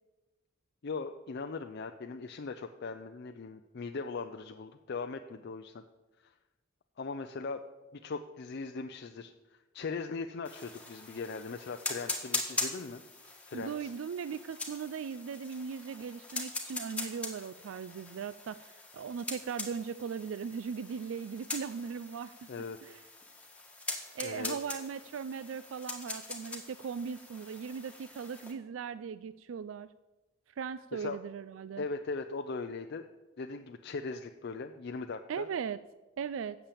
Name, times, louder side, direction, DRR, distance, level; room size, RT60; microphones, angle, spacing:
voice 1, 0.8-5.8 6.2-6.3 7.0-7.6 7.9-9.3 9.7-13.0 13.4-13.9 22.5-22.8 24.2-24.6 30.9-31.2 31.8-33.0 33.4-35.5, left 4 dB, 55° left, 6 dB, 0.5 m, -39 dB
sound 1, 10.4-28.5, left 2 dB, 5° left, 1.8 m, -42 dB
voice 2, 13.5-22.4 22.8-23.0 24.1-29.9 30.6-31.9 35.3-35.8 36.2-36.6, right 6 dB, 75° right, 15 dB, 0.4 m, -38 dB
8.8 x 7.2 x 8.5 m, 1.1 s
head